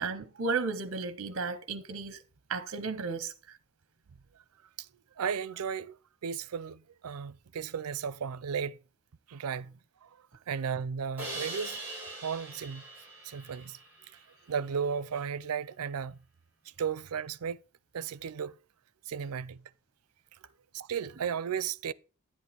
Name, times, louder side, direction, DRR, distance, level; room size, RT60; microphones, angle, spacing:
voice 1, 0.0-2.2 2.5-3.3, right 4 dB, 60° right, 0.8 m, -33 dB
voice 2, 5.2-6.0 6.2-8.8 9.3-9.7 10.0-10.1 10.5-11.8 12.1-12.8 13.2-13.8 14.5-16.2 16.8-17.6 17.9-18.5 19.1-19.6 20.7-21.9, right 7 dB, 85° right, 0.5 m, -34 dB
Crash cymbal, 11.2-14.2, right 2 dB, 10° right, 5.2 m, -42 dB
10.5 x 8.5 x 3.4 m
head